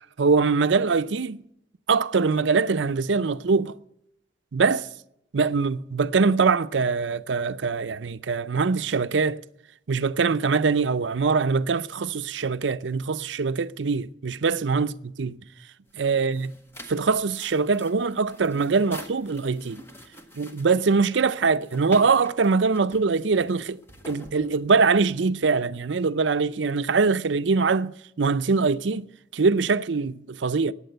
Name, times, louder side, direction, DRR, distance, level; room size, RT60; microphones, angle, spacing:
voice 1, 0.2-1.4 1.9-3.7 4.5-4.9 5.3-9.4 9.9-14.9 15.2-15.4 15.9-16.5 16.9-19.8 20.3-23.8 24.1-29.1 29.3-30.7, right 4 dB, 85° right, 0.6 m, -23 dB
sound 1, 15.9-25.0, equal, 15° left, 1.6 m, -46 dB
15.0 x 9.5 x 7.8 m
head